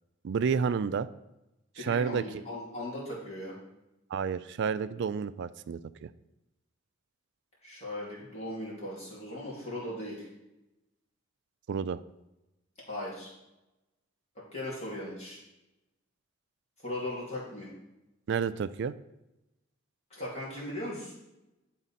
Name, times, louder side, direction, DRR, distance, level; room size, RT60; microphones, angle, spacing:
voice 1, 0.2-1.1 1.8-2.2 4.1-6.1 11.7-12.0 18.3-18.9, right 6 dB, 60° right, 14 dB, 0.3 m, -30 dB
voice 2, 1.8-3.5 7.6-10.3 12.9-13.3 14.5-15.4 16.8-17.7 20.1-21.1, left 1 dB, 35° left, -6 dB, 2.6 m, -38 dB
10.5 x 4.0 x 4.2 m, 0.95 s
head